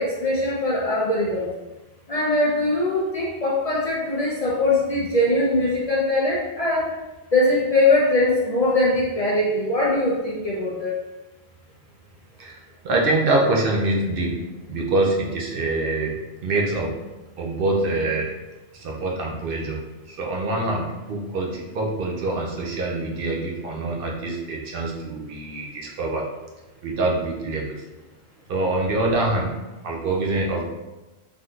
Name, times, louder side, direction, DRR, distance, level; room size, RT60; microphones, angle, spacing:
voice 1, 0.0-1.5 2.1-6.9 7.3-10.9, left 2 dB, 50° left, -6 dB, 0.5 m, -21 dB
voice 2, 12.4-17.1 17.4-18.3 18.7-26.3 26.8-27.8 28.5-30.6, right 2 dB, 65° right, -1 dB, 0.7 m, -25 dB
3.5 x 2.6 x 2.3 m, 1.1 s
omnidirectional pair, 1.1 m